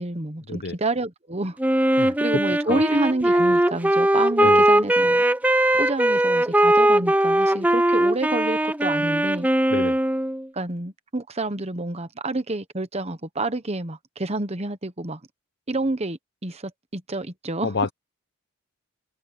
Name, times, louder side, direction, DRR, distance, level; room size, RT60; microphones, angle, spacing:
voice 1, 0.0-1.6 2.0-5.2 5.7-9.5 10.5-15.2 15.7-17.7, right 2 dB, 30° right, 1.1 m, -29 dB
Wind instrument woodwind instrument, 1.6-10.4, right 1 dB, 5° right, 0.5 m, -20 dB
voice 2, 17.6-17.9, left 4 dB, 50° left, 0.8 m, -27 dB
head